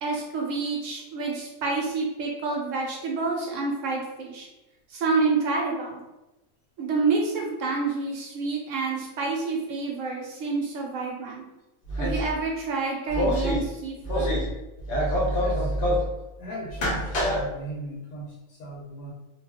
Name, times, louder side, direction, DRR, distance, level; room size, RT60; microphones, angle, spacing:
voice 1, 0.0-4.5 4.9-6.0 6.8-11.4 12.0-14.3, right 4 dB, 70° right, -1 dB, 0.9 m, -28 dB
sound 1, 11.9-12.3 13.1-13.6 14.0-14.5 14.8-16.1 16.7-17.4, equal, 50° left, 0.7 m, -25 dB
voice 2, 15.4-15.7 16.4-19.1, right 1 dB, 85° left, -3 dB, 1.0 m, -38 dB
2.4 x 2.3 x 3.4 m, 1.0 s
omnidirectional pair, 1.5 m